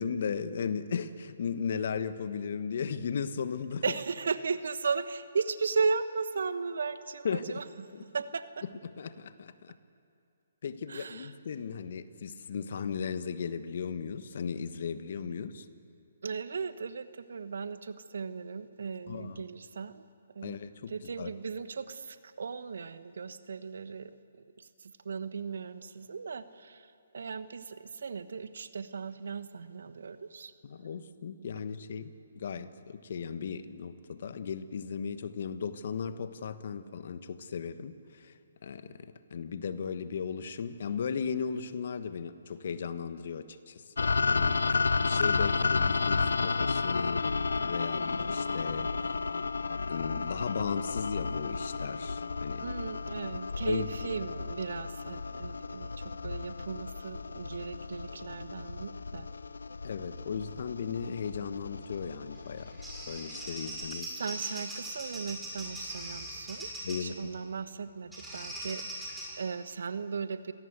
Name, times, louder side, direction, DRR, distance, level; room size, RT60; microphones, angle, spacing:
voice 1, 0.0-3.8 7.2-7.6 7.9-8.0 9.0-9.7 10.6-15.7 19.1-19.4 20.4-20.9 21.2-21.3 30.6-38.3 38.6-47.3 47.6-49.2 49.9-52.7 53.6-53.9 59.8-62.8 63.1-64.1 66.8-67.3, left 6 dB, 55° left, 12 dB, 1.3 m, -36 dB
voice 2, 3.8-7.6 8.1-8.6 10.9-11.3 16.2-20.0 20.3-20.6 20.9-30.5 52.6-59.3 64.2-66.7 67.0-70.5, right 5 dB, 70° right, 12 dB, 1.2 m, -36 dB
sound 1, 44.0-63.9, left 4 dB, 80° left, 0.6 m, -32 dB
Bird vocalization bird call bird song, 62.4-67.1 68.1-69.3, right 1 dB, 5° right, 6.5 m, -40 dB
26.5 x 18.0 x 8.1 m, 2.5 s
figure-of-eight pair, 140°, 0 cm